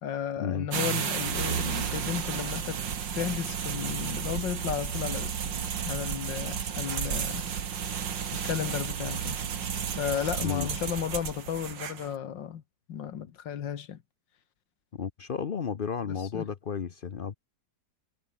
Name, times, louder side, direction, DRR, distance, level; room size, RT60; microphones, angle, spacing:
voice 1, 0.0-2.8 3.1-5.3 5.8-7.5 8.3-9.4 10.0-12.6 12.9-14.0 16.0-16.5, left 9 dB, 80° left, 2.0 m, -34 dB
sound 1, 0.7-12.1, right 7 dB, 75° right, 2.4 m, -32 dB
voice 2, 15.0-17.3, left 6 dB, 55° left, 0.6 m, -32 dB
omnidirectional pair, 2.0 m